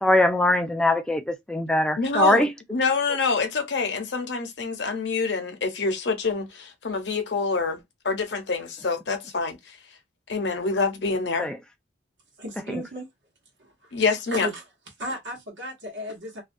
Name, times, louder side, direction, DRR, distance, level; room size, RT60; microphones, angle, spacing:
voice 1, 0.0-2.5 11.4-11.6 12.7-12.8, left 1 dB, 5° left, 0.3 m, -22 dB
voice 2, 2.0-9.8 10.3-11.5 13.9-14.5, left 4 dB, 70° left, 0.7 m, -26 dB
voice 3, 12.4-13.1 13.6-14.6 15.0-16.4, equal, 80° right, 0.9 m, -35 dB
2.3 x 2.1 x 2.5 m
head